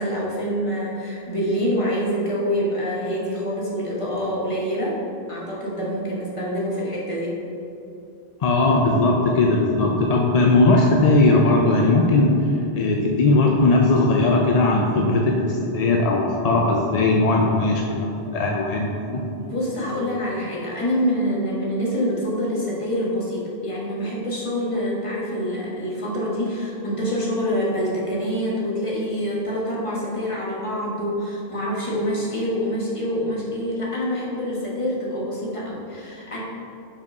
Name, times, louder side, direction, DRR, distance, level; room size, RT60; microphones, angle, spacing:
voice 1, 0.0-5.0 5.3-7.4 19.3-36.4, equal, 30° left, -6 dB, 1.5 m, -26 dB
voice 2, 8.4-19.2, left 2 dB, 50° left, 0 dB, 0.5 m, -19 dB
5.3 x 5.0 x 5.3 m, 2.8 s
omnidirectional pair, 1.1 m